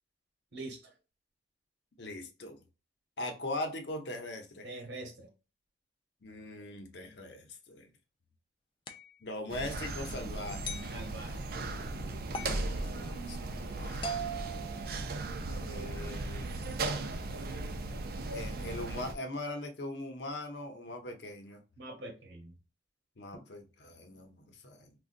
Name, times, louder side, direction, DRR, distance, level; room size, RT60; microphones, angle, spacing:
voice 1, 2.0-2.6 3.2-4.7 6.2-7.9 9.2-10.8 12.3-14.4 15.6-16.8 18.3-21.6 23.2-24.9, left 1 dB, 70° left, 0.7 m, -41 dB
voice 2, 4.6-5.3 10.9-11.4 21.8-22.5, right 2 dB, 70° right, 1.0 m, -43 dB
sound 1, 8.9-9.1 10.6-11.0 12.3-12.6 14.0-15.4, right 2 dB, 25° left, 0.4 m, -40 dB
sound 2, 9.5-19.1, right 2 dB, 55° right, 0.4 m, -37 dB
3.8 x 2.3 x 2.5 m
head